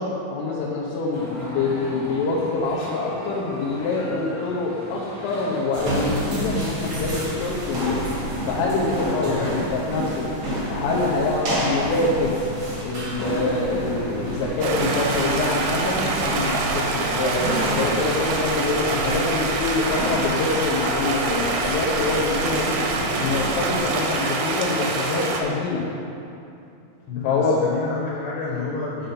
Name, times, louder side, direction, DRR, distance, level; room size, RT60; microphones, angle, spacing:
voice 1, 0.0-12.5 12.8-25.8 27.2-27.6, left 3 dB, 85° left, -6 dB, 3.6 m, -25 dB
sound 1, 1.1-19.2, equal, 45° left, 1.1 m, -38 dB
sound 2, 5.7-23.8, equal, 50° right, 1.6 m, -30 dB
voice 2, 9.2-9.6 27.1-29.1, left 4 dB, 60° left, -6 dB, 2.9 m, -29 dB
Stream, 14.6-25.4, right 3 dB, 85° right, 2.2 m, -26 dB
10.0 x 5.3 x 5.9 m, 2.6 s
omnidirectional pair, 5.7 m